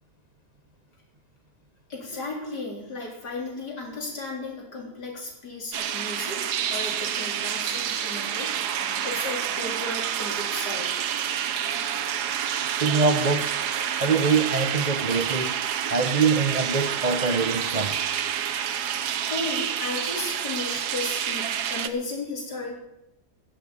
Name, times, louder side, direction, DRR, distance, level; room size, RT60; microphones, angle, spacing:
voice 1, 1.9-8.5 9.0-10.9 11.2-11.3 18.7-18.8 19.2-22.7, left 2 dB, 85° left, -1 dB, 4.3 m, -34 dB
sound 1, 5.7-21.9, right 9 dB, 80° right, 1.4 m, -28 dB
voice 2, 12.8-13.6 14.0-15.6 15.9-18.0, right 4 dB, 40° right, 7 dB, 0.6 m, -24 dB
15.5 x 7.8 x 8.3 m, 0.87 s
omnidirectional pair, 1.7 m